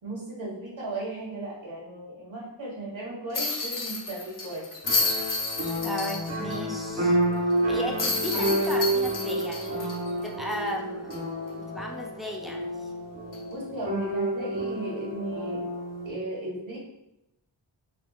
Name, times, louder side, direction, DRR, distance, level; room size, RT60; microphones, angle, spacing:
voice 1, 0.0-4.7 13.5-15.7 16.0-16.8, right 2 dB, 85° right, -4 dB, 1.4 m, -36 dB
sound 1, 3.3-6.6 6.9-7.0 8.0-10.7 11.1-11.2 13.3-13.5, left 3 dB, 45° left, 0.7 m, -30 dB
sound 2, 4.8-16.1, right 1 dB, 35° right, 0.8 m, -29 dB
voice 2, 5.8-7.2 7.7-10.0 10.2-11.1 11.7-12.9, equal, ahead, -1 dB, 0.5 m, -35 dB
4.1 x 2.9 x 2.3 m, 0.87 s
wide cardioid pair, 80°, 45 cm